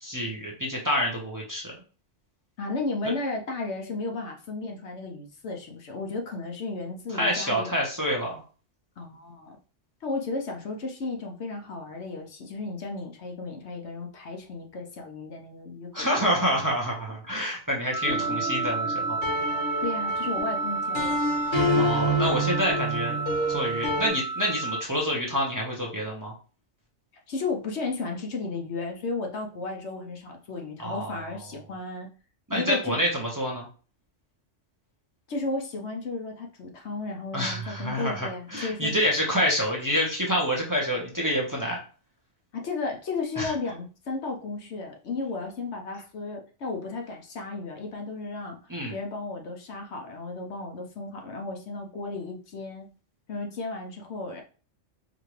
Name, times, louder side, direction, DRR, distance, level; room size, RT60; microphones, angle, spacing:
voice 1, 0.0-1.8 3.0-3.1 7.1-8.4 15.9-19.2 21.8-23.2 23.5-26.3 30.8-31.5 32.5-33.7 37.3-41.8 43.4-43.5 48.7-48.9, equal, 15° right, -2 dB, 1.0 m, -27 dB
voice 2, 2.6-7.7 9.0-9.6 10.0-16.1 19.8-21.2 27.3-32.1 32.5-33.0 35.3-39.0 42.5-48.6 48.9-52.9 53.3-54.4, left 3 dB, 65° left, 2 dB, 1.0 m, -34 dB
Wind instrument woodwind instrument, 17.9-24.8, right 3 dB, 35° left, 0.5 m, -31 dB
sound 1, 18.0-24.1, equal, 90° left, 1.8 m, -28 dB
5.0 x 2.7 x 3.1 m, 0.37 s
omnidirectional pair, 1.3 m